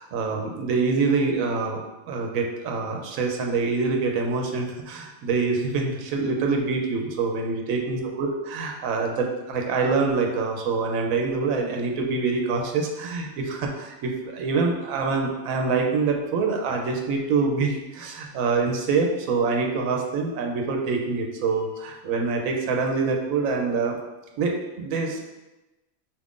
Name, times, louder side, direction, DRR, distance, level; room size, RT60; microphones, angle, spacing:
voice 1, 0.0-1.8 2.1-24.0 24.4-25.3, right 4 dB, 80° right, 2 dB, 1.0 m, -25 dB
4.5 x 3.6 x 2.5 m, 1.0 s
omnidirectional pair, 1.4 m